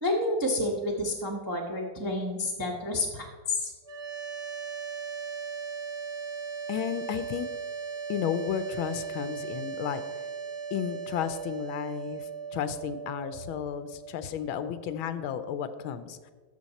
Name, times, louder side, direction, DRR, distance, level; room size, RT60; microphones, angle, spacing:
voice 1, 0.0-3.7, left 1 dB, 15° right, -1 dB, 0.8 m, -29 dB
sound 1, 3.8-14.9, right 6 dB, 40° right, 1.5 m, -38 dB
voice 2, 6.7-7.5 8.1-10.0 10.7-16.2, left 9 dB, 85° left, 12 dB, 1.4 m, -33 dB
12.5 x 6.8 x 4.1 m, 1.4 s
omnidirectional pair, 2.2 m